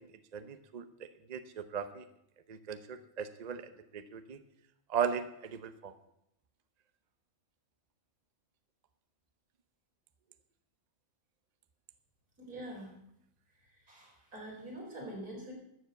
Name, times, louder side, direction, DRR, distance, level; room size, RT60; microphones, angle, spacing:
voice 1, 0.0-2.0 2.5-4.4 4.9-5.9, right 7 dB, 35° right, 11 dB, 0.7 m, -38 dB
voice 2, 12.4-12.9 13.9-15.5, right 1 dB, 85° right, -2 dB, 4.7 m, -44 dB
12.5 x 7.2 x 8.1 m, 0.78 s
omnidirectional pair, 1.5 m